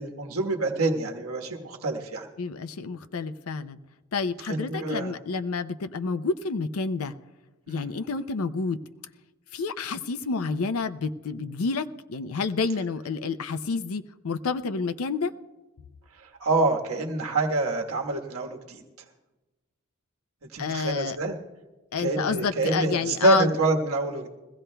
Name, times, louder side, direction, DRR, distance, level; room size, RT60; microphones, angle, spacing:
voice 1, 0.0-2.3 4.5-5.1 7.7-7.9 16.1-18.8 20.5-21.3 22.0-24.3, right 2 dB, 75° right, 2 dB, 1.4 m, -26 dB
voice 2, 2.4-3.8 4.1-7.1 7.7-8.8 9.5-15.3 20.6-21.2 21.9-23.5, left 4 dB, 75° left, 9 dB, 0.5 m, -29 dB
22.5 x 16.0 x 2.2 m, 1.1 s
head